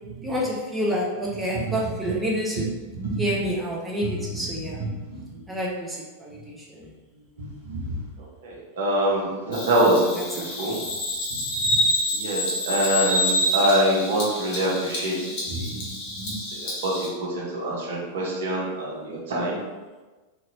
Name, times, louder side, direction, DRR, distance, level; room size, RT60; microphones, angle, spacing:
voice 1, 0.2-2.6 3.2-4.8 5.5-6.9 10.1-10.9 14.5-14.9 15.2-15.4, equal, 10° right, -4 dB, 0.5 m, -29 dB
voice 2, 2.9-3.3 4.0-4.1 5.1-5.4 7.4-8.0 8.4-10.3 10.6-10.7 11.3-11.8 12.1-15.1 15.4-16.3 16.8-19.6, right 1 dB, 60° right, -4 dB, 0.8 m, -25 dB
Bird vocalization bird call bird song, 9.5-17.1, left 1 dB, 45° left, 0.9 m, -27 dB
2.8 x 2.6 x 2.7 m, 1.2 s
figure-of-eight pair, 90°, 0 cm